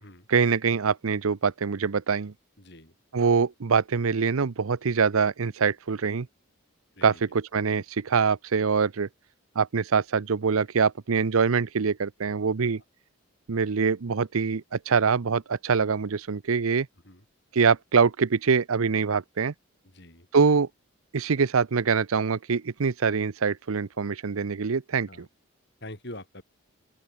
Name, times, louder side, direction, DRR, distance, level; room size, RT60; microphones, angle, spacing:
voice 1, 0.3-2.3 3.1-6.3 7.0-9.1 9.6-12.8 13.5-16.9 17.5-19.5 20.3-20.7 21.1-25.3, right 5 dB, 80° right, 0.6 m, -24 dB
voice 2, 2.6-2.9 7.0-7.2 17.0-17.2 19.9-20.3 25.1-25.3 25.8-26.4, left 1 dB, 50° left, 7.3 m, -44 dB
open air
head